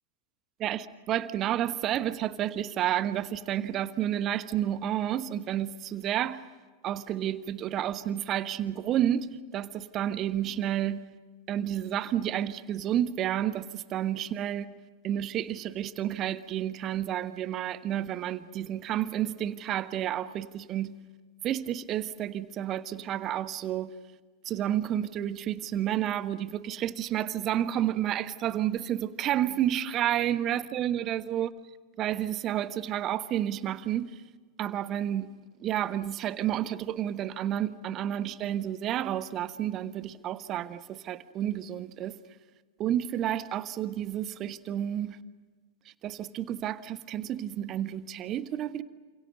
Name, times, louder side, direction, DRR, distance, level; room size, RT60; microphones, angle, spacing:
voice 1, 0.6-6.4 6.8-11.1 11.5-14.7 15.0-21.0 21.4-23.9 24.4-31.5 32.0-34.1 34.6-35.3 35.6-42.2 42.8-45.2 46.0-48.8, right 11 dB, 35° right, 1.2 m, -30 dB
29.5 x 27.5 x 6.8 m
figure-of-eight pair, 90°, 0 cm